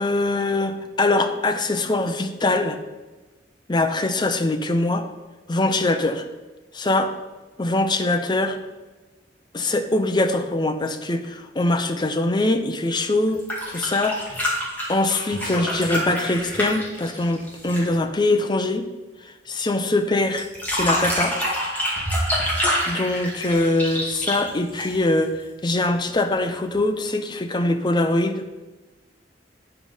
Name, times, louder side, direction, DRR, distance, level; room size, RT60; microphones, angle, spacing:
voice 1, 0.0-2.8 3.7-5.1 5.5-6.3 6.7-7.1 7.6-8.6 9.5-14.6 14.9-18.9 19.5-21.4 22.9-28.5, left 2 dB, 25° left, 7 dB, 0.6 m, -23 dB
sound 1, 13.3-18.0 20.4-25.2 26.7-26.8, equal, 10° left, 2.1 m, -26 dB
9.1 x 4.9 x 5.4 m, 1.2 s
head